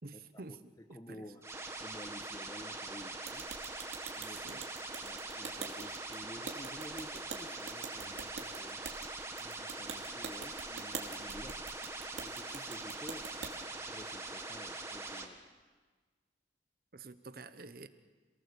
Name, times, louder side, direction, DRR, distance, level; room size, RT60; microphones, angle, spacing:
voice 1, 0.0-0.6 0.9-1.3 4.2-4.7 16.9-17.9, right 3 dB, 55° right, 11 dB, 0.9 m, -49 dB
voice 2, 0.9-1.4 1.8-3.5 4.2-4.7 5.0-8.8 9.4-11.6 12.2-13.3 13.8-15.4, left 1 dB, 20° left, 8 dB, 1.1 m, -51 dB
sound 1, 1.4-15.2, right 2 dB, 15° right, 1.6 m, -43 dB
sound 2, 3.2-13.5, right 5 dB, 90° right, 2.5 m, -45 dB
27.5 x 18.5 x 7.0 m, 1.4 s
head